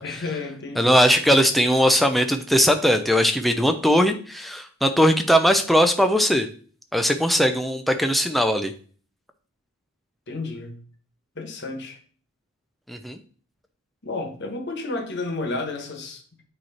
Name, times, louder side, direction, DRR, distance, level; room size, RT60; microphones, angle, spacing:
voice 1, 0.0-1.0 10.3-10.8 11.3-12.0 14.0-16.2, left 3 dB, 50° left, 1.3 m, -31 dB
voice 2, 0.8-6.5 6.9-8.7 12.9-13.2, equal, ahead, 0.5 m, -19 dB
9.1 x 3.1 x 4.2 m
head